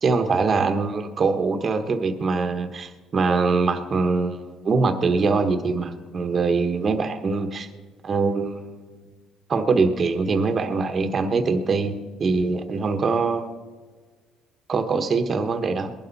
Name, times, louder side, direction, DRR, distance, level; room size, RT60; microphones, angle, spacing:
voice 1, 0.0-7.7 8.0-9.1 9.5-13.5 14.7-15.9, right 4 dB, 35° right, 6 dB, 1.2 m, -23 dB
20.5 x 11.5 x 4.1 m, 1.4 s
cardioid pair, 120°, 0 cm